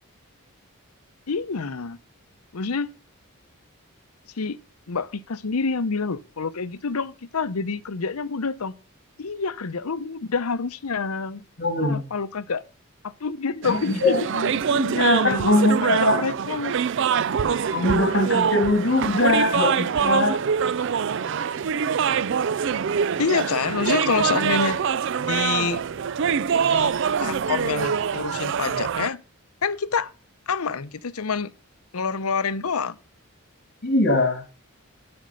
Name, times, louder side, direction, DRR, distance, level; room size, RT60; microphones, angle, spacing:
voice 1, 1.3-2.0 2.5-2.9 4.3-4.6 4.9-8.8 9.2-11.4 11.8-12.6 13.0-14.2 15.2-16.8 23.2-24.8 25.2-25.8 26.6-26.9 27.2-29.2 29.6-30.1 30.5-31.5 31.9-33.0, left 5 dB, 85° left, 0.7 m, -27 dB
voice 2, 11.6-12.0 13.7-16.2 17.7-20.4 33.8-34.4, left 2 dB, 55° left, 2.8 m, -22 dB
sound 1, 13.6-29.1, right 7 dB, 55° right, 0.4 m, -24 dB
12.5 x 5.4 x 5.3 m
head